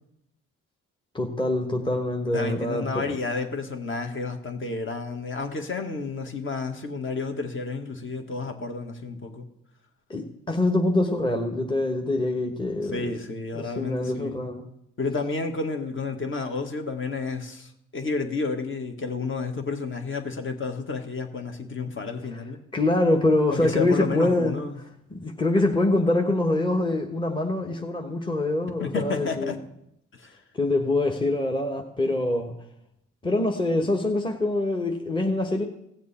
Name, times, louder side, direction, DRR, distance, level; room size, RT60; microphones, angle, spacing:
voice 1, 1.1-3.2 10.1-13.1 13.5-14.6 22.3-22.4 22.7-29.6 30.5-32.5 33.2-35.7, left 2 dB, 15° left, 3 dB, 1.3 m, -25 dB
voice 2, 2.3-9.5 12.9-14.4 15.0-22.6 23.5-24.8 28.8-29.6 30.2-30.3, left 4 dB, 40° left, 4 dB, 1.8 m, -31 dB
16.5 x 7.5 x 4.3 m, 0.79 s
cardioid pair, 90°, 30 cm